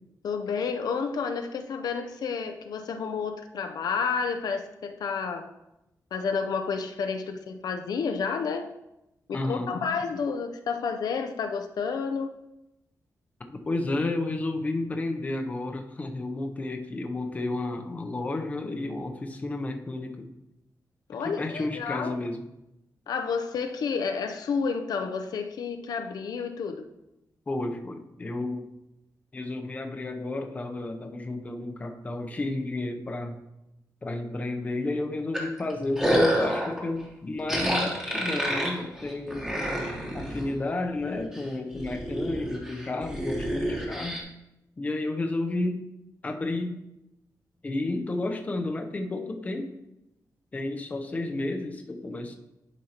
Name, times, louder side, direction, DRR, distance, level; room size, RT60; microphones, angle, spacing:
voice 1, 0.2-5.5 6.1-8.7 9.3-12.3 21.1-22.1 23.1-26.8, left 5 dB, 80° left, 7 dB, 0.5 m, -30 dB
voice 2, 9.3-9.8 13.5-20.3 21.2-22.5 27.5-28.7 29.3-33.4 34.0-39.5 40.1-44.3 44.8-45.9 46.2-46.8 47.6-49.7 50.5-52.3, left 2 dB, 20° left, 4 dB, 0.6 m, -31 dB
sound 1, 35.3-36.8 37.5-40.5 41.0-41.4 41.7-44.2, equal, 10° right, 1.2 m, -28 dB
10.5 x 5.2 x 2.9 m, 0.91 s
wide cardioid pair, 175°, 7 cm